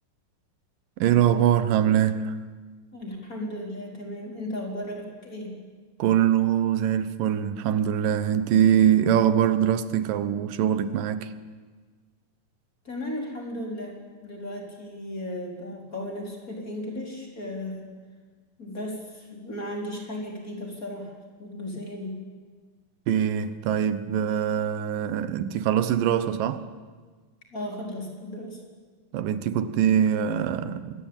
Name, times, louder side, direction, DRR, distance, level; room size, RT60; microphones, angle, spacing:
voice 1, 1.0-2.3 6.0-11.3 23.1-26.6 29.1-31.1, right 9 dB, 85° right, 2.8 m, -23 dB
voice 2, 2.9-5.6 12.8-17.9 18.6-21.1 21.4-22.2 27.5-28.6, left 1 dB, 25° left, 4.6 m, -35 dB
27.0 x 21.5 x 9.0 m
omnidirectional pair, 3.8 m